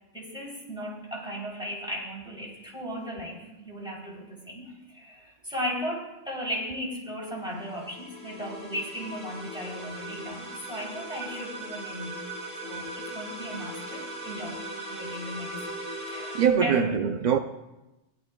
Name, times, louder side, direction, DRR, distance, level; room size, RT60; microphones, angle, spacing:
voice 1, 0.1-12.2 12.6-14.6 14.9-15.7 16.1-16.9, equal, 5° right, 3.2 m, -36 dB
sound 1, 7.4-16.5, right 1 dB, 30° right, 2.2 m, -39 dB
voice 2, 16.3-17.4, right 8 dB, 70° right, 0.4 m, -23 dB
18.0 x 11.5 x 2.2 m
omnidirectional pair, 1.3 m